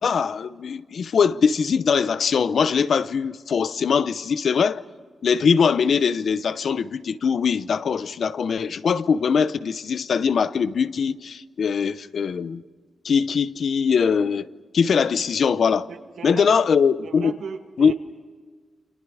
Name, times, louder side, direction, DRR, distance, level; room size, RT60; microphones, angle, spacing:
voice 1, 0.0-4.8 5.2-12.6 13.0-14.5 14.7-15.9 16.2-17.3 17.8-17.9, left 6 dB, 65° left, 0.8 m, -21 dB
voice 2, 15.9-16.7 17.0-17.9, right 6 dB, 90° right, 2.0 m, -37 dB
29.0 x 27.0 x 5.0 m
wide cardioid pair, 120°, 0 cm